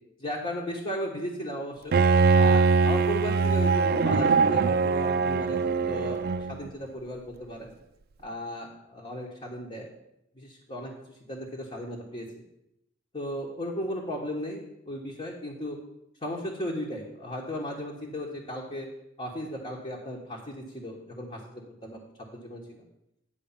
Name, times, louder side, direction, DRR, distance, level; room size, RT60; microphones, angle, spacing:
voice 1, 0.2-2.0 2.3-5.6 5.9-7.7 8.2-9.9 10.3-12.3 13.1-15.8 16.2-18.9 19.2-22.0 22.3-22.8, equal, 30° left, -3 dB, 1.2 m, -36 dB
Bowed string instrument, 1.9-6.7, right 4 dB, 50° right, 0.4 m, -22 dB
10.0 x 4.9 x 7.3 m, 0.83 s
head